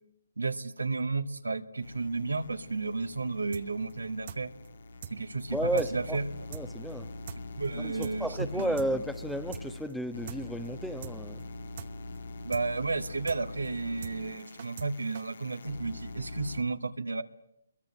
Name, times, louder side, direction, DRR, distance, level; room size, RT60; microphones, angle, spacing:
voice 1, 0.4-4.5 5.1-6.3 7.6-8.9 12.4-17.2, right 3 dB, 90° right, 2.0 m, -32 dB
sound 1, 1.8-16.6, left 2 dB, 65° left, 2.3 m, -43 dB
sound 2, 3.5-3.6 3.9-4.0 4.3-4.4 4.6-4.7 5.0-5.1 5.4-5.5 5.8-5.9 6.1-6.2 6.5-6.6 6.9-7.0 7.3-7.4 7.6-7.7 8.0-8.1 8.4-8.9 9.1-9.2 9.5-9.6 9.9-10.0 10.3-10.4 10.6-10.7 11.0-11.1 11.4-11.5 11.8-11.9 12.1-12.2 12.5-12.6 12.9-13.0 13.3-13.4 13.6-13.7 14.0-14.1 14.4-14.9 15.1-15.2, right 9 dB, 45° right, 1.1 m, -42 dB
voice 2, 5.5-6.2 6.5-7.1 7.8-11.4, equal, ahead, 1.2 m, -33 dB
23.0 x 22.0 x 10.0 m
figure-of-eight pair, 145°, 0 cm